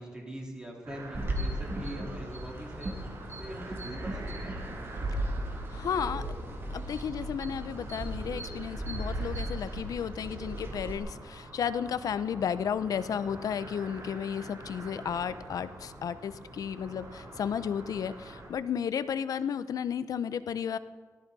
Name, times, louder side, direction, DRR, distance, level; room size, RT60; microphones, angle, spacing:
voice 1, 0.0-4.7, equal, 15° right, -1 dB, 3.8 m, -42 dB
sound 1, 0.8-18.5, right 2 dB, 65° right, 3.8 m, -46 dB
sound 2, 1.1-11.0, right 1 dB, 40° right, 2.6 m, -36 dB
voice 2, 5.7-6.2 6.7-20.8, left 8 dB, 75° left, 14 dB, 0.6 m, -33 dB
17.5 x 13.5 x 4.1 m, 1.4 s
cardioid pair, 85°, 6 cm